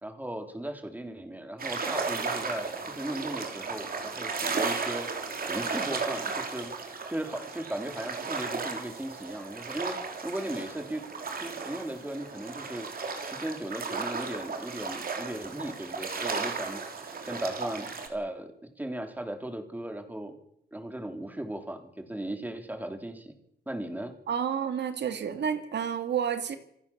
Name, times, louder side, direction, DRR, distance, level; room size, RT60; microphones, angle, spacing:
voice 1, 0.0-5.1 5.5-11.0 11.4-12.9 13.2-20.4 20.7-23.3 23.6-24.1, right 1 dB, 10° right, 6 dB, 3.4 m, -37 dB
sound 1, 1.6-18.1, right 4 dB, 60° right, 4.0 m, -35 dB
voice 2, 24.3-26.6, right 8 dB, 90° right, 9 dB, 2.0 m, -30 dB
27.0 x 16.0 x 7.2 m, 0.75 s
wide cardioid pair, 110°, 17 cm